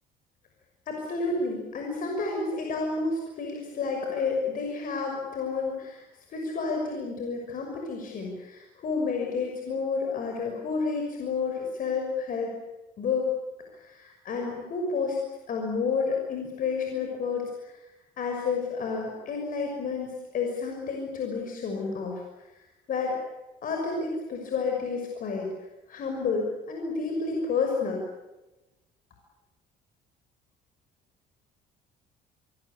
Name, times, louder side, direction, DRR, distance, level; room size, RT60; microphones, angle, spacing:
voice 1, 0.9-6.0 6.3-12.5 13.0-13.3 13.8-15.2 15.5-17.8 18.2-22.2 22.9-23.1 23.6-25.5 25.9-28.0, left 4 dB, 55° left, 1 dB, 6.2 m, -30 dB
26.0 x 21.0 x 8.6 m, 1.1 s
cardioid pair, 110°, 17 cm